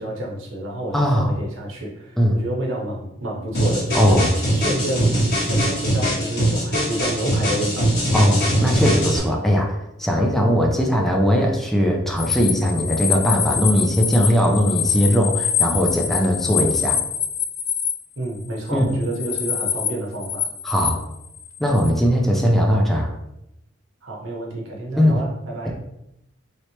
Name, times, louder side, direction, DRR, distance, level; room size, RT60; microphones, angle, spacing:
voice 1, 0.0-7.9 18.2-20.5 24.0-25.7, right 1 dB, 80° right, -2 dB, 0.9 m, -29 dB
voice 2, 0.9-1.3 2.2-2.4 3.9-4.3 8.1-17.0 18.7-18.8 20.6-21.0 21.6-23.1 25.0-25.2, equal, ahead, 0 dB, 0.4 m, -19 dB
sound 1, 3.5-9.2, right 1 dB, 55° left, 1.5 m, -22 dB
sound 2, 12.2-18.0 18.7-19.9 20.1-21.9, left 8 dB, 75° left, 0.4 m, -25 dB
3.2 x 2.9 x 2.8 m, 0.83 s
head